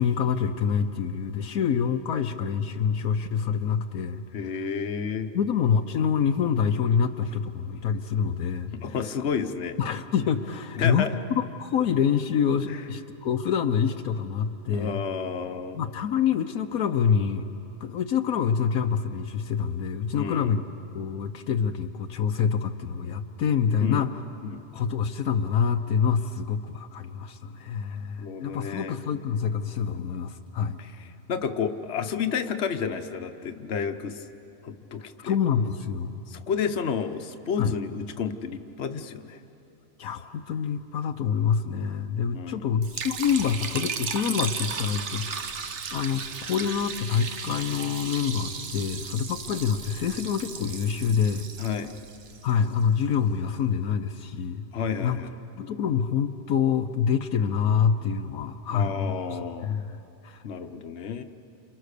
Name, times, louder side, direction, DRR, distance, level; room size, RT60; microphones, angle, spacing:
voice 1, 0.0-4.2 5.3-8.7 9.8-11.1 11.4-15.0 15.7-17.4 17.8-20.6 20.9-24.1 24.7-30.8 35.2-36.1 37.6-37.7 40.0-51.5 52.4-54.7 55.0-55.2 55.6-60.0 60.2-60.4, left 7 dB, 75° left, 7 dB, 1.2 m, -26 dB
voice 2, 4.3-5.3 8.8-9.8 10.8-11.1 12.7-12.8 14.7-15.8 20.1-20.6 23.8-24.1 24.4-24.6 28.2-29.0 30.8-34.2 34.6-35.3 36.3-39.4 42.3-42.7 51.6-51.9 54.7-55.3 58.7-59.7 60.4-61.2, left 6 dB, 50° left, 6 dB, 1.3 m, -31 dB
Liquid, 42.8-53.0, right 6 dB, 55° right, 1.3 m, -35 dB
29.5 x 27.5 x 6.7 m, 3.0 s
omnidirectional pair, 1.6 m